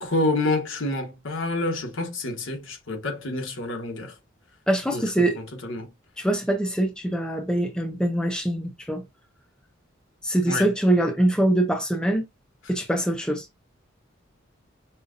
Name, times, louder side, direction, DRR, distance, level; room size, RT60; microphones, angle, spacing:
voice 1, 0.0-4.1 4.9-5.9 10.5-10.7, left 2 dB, 75° left, 1.2 m, -28 dB
voice 2, 4.7-5.4 6.2-9.0 10.2-12.2 12.7-13.4, right 1 dB, 5° left, 0.6 m, -23 dB
5.5 x 2.3 x 2.6 m
head